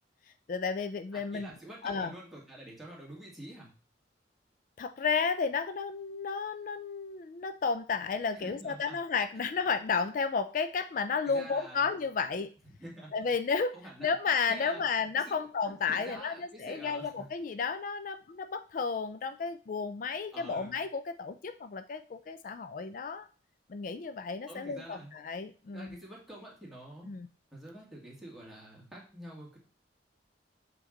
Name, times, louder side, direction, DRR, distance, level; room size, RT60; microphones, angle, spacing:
voice 1, 0.5-1.5 1.8-2.1 4.8-12.5 13.1-13.7 14.0-23.3 23.7-25.9 27.1-27.3, left 5 dB, 45° left, 11 dB, 0.4 m, -32 dB
voice 2, 1.1-3.7 8.3-9.0 11.2-11.9 12.8-13.1 13.7-14.1 14.5-14.9 15.3-15.4 15.6-17.3 20.3-20.8 24.5-25.1 25.7-27.1 27.5-29.6, right 1 dB, ahead, -5 dB, 2.2 m, -47 dB
7.8 x 4.6 x 3.8 m, 0.38 s
head